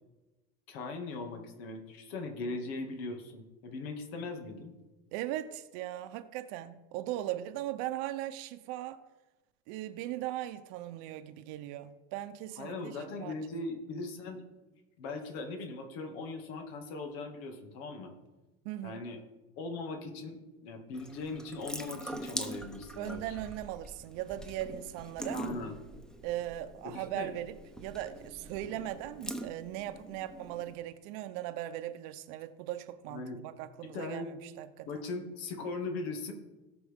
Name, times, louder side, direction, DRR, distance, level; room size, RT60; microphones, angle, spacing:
voice 1, 0.7-4.7 12.6-14.4 15.0-18.1 18.8-19.2 19.6-23.4 25.3-25.8 26.8-27.4 33.1-33.4 33.8-34.3 34.9-36.3, left 3 dB, 75° left, 2.2 m, -39 dB
voice 2, 5.1-9.0 9.7-13.3 18.6-19.0 23.0-25.4 26.2-35.0, right 13 dB, 70° right, 0.8 m, -39 dB
Water tap faucet / Sink (filling or washing) / Drip, 20.9-30.7, right 1 dB, ahead, 0.9 m, -43 dB
17.5 x 6.1 x 3.6 m
supercardioid pair, 115°, 31 cm